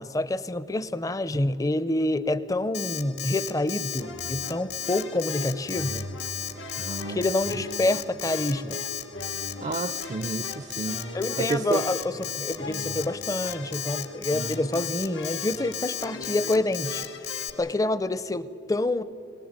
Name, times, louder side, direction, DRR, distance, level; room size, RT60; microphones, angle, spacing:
voice 1, 0.0-6.1 7.1-8.8 11.1-17.1 17.6-19.0, left 2 dB, 20° left, 15 dB, 0.5 m, -27 dB
Alarm, 2.7-17.5, left 11 dB, 60° left, 1.4 m, -34 dB
sound 1, 4.0-17.7, left 2 dB, 90° left, 1.9 m, -40 dB
voice 2, 6.8-7.3 9.6-11.9, right 3 dB, 35° right, 13 dB, 0.4 m, -31 dB
23.0 x 18.5 x 8.8 m, 2.8 s
head